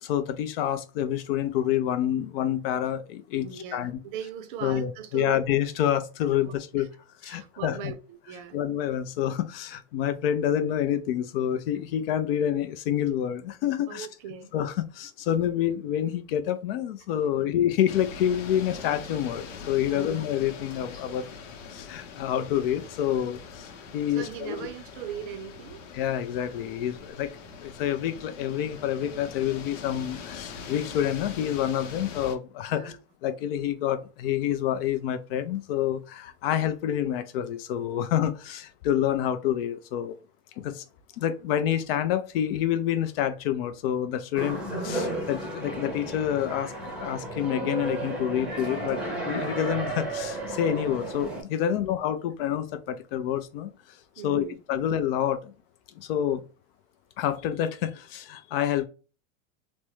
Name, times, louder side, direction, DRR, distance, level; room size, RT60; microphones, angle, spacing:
voice 1, 0.0-4.0 4.6-6.9 7.2-7.8 8.5-14.1 14.5-21.3 21.7-24.6 25.9-27.3 27.6-40.2 40.6-40.8 41.2-53.7 54.2-55.5 56.0-56.4 57.2-58.9, left 10 dB, 50° left, 0.5 m, -28 dB
voice 2, 3.4-5.4 6.3-6.9 7.2-8.6 13.9-14.5 17.3-17.5 19.9-20.1 24.1-25.8 32.7-33.0 44.4-44.6 51.6-51.9 54.2-55.0, right 8 dB, 45° right, 0.6 m, -40 dB
sound 1, 17.9-32.4, left 6 dB, 75° left, 0.9 m, -42 dB
sound 2, 44.3-51.4, right 2 dB, 5° right, 0.7 m, -33 dB
3.4 x 2.1 x 3.0 m
supercardioid pair, 150°, 38 cm